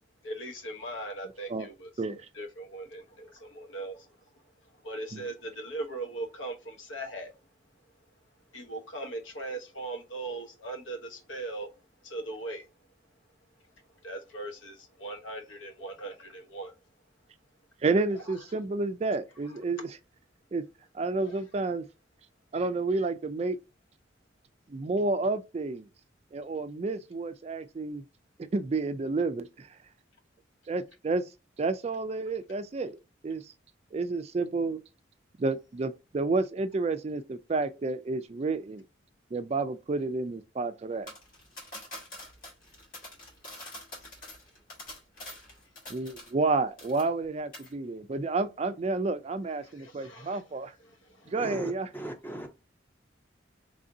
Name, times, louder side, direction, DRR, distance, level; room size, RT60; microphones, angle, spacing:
voice 1, 0.2-1.9 2.3-4.1 4.8-7.3 8.5-11.7 12.0-12.7 14.0-16.7 21.2-21.4 49.6-50.4 50.9-51.3, right 2 dB, 90° left, 1.0 m, -39 dB
voice 2, 17.8-20.0 20.5-20.6 20.9-21.8 22.5-23.6 24.7-25.9 26.3-28.0 28.4-29.7 30.7-31.2 31.6-33.0 33.2-33.5 33.9-34.8 35.4-38.8 39.3-41.1 45.9-50.7 51.3-51.9, right 3 dB, 35° right, 0.3 m, -30 dB
sound 1, 41.1-46.5 46.8-47.3 47.5-47.7, left 1 dB, 45° left, 1.3 m, -45 dB
voice 3, 51.4-52.5, right 1 dB, 10° left, 0.6 m, -38 dB
3.3 x 2.6 x 3.8 m
head